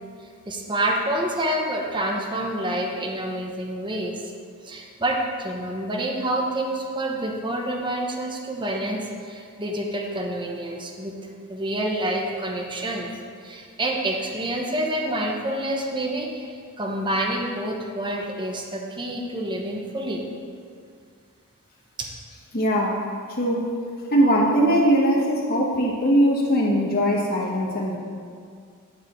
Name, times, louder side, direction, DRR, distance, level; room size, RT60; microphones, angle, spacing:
voice 1, 0.5-4.2 4.6-11.2 11.5-13.1 13.4-20.3 22.0-22.1, right 1 dB, 20° right, 0 dB, 1.2 m, -28 dB
voice 2, 22.5-23.0 23.4-23.7 24.1-28.0, equal, 45° left, -3 dB, 1.3 m, -20 dB
11.5 x 4.9 x 8.1 m, 2.2 s
head